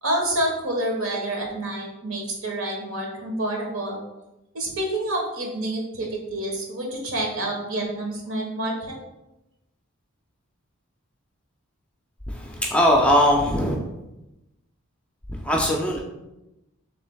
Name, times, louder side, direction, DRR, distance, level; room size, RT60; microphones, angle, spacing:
voice 1, 0.0-4.0 4.5-9.0, right 1 dB, 70° right, 0 dB, 1.2 m, -28 dB
voice 2, 12.3-13.8 15.3-16.0, left 1 dB, 5° left, -1 dB, 0.5 m, -20 dB
6.5 x 3.3 x 2.3 m, 0.95 s
head